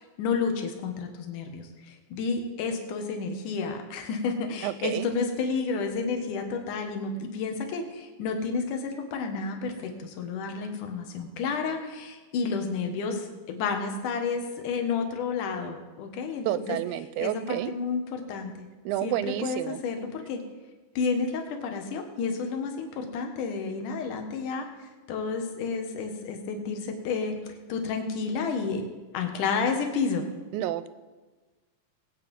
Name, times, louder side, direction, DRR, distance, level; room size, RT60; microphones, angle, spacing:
voice 1, 0.0-16.8 17.2-18.7 19.0-20.4 21.0-27.4 27.7-28.9 29.1-30.2, left 5 dB, 65° left, 4 dB, 2.8 m, -31 dB
voice 2, 4.6-5.1 16.5-17.7 18.9-19.8 30.5-30.9, right 13 dB, 85° right, 14 dB, 2.3 m, -30 dB
19.5 x 9.0 x 5.4 m, 1.3 s
omnidirectional pair, 4.3 m